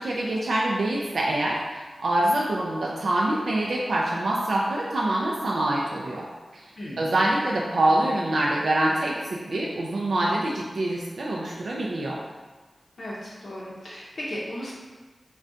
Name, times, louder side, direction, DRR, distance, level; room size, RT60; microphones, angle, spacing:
voice 1, 0.0-6.3 6.5-6.7 7.0-12.2, right 1 dB, 80° right, -3 dB, 0.3 m, -25 dB
voice 2, 13.0-14.7, equal, 75° left, -7 dB, 0.6 m, -35 dB
2.5 x 2.2 x 3.6 m, 1.3 s
cardioid pair, 45°, 0 cm